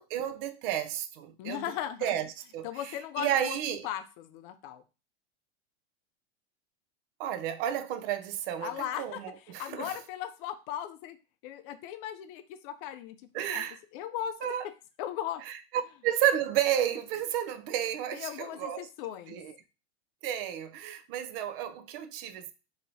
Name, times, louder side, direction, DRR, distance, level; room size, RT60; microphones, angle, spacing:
voice 1, 0.0-1.7 2.0-3.9 7.2-9.9 13.3-13.8 14.4-14.6 15.5-15.6 16.0-18.9 19.3-19.5 20.2-22.5, right 10 dB, 55° right, 0.5 m, -32 dB
voice 2, 1.4-2.1 2.6-4.8 8.6-11.2 11.4-13.6 13.9-14.6 15.0-15.4 18.1-19.4, left 11 dB, 50° left, 0.5 m, -38 dB
3.0 x 2.9 x 2.6 m
hypercardioid pair, 115°, 33 cm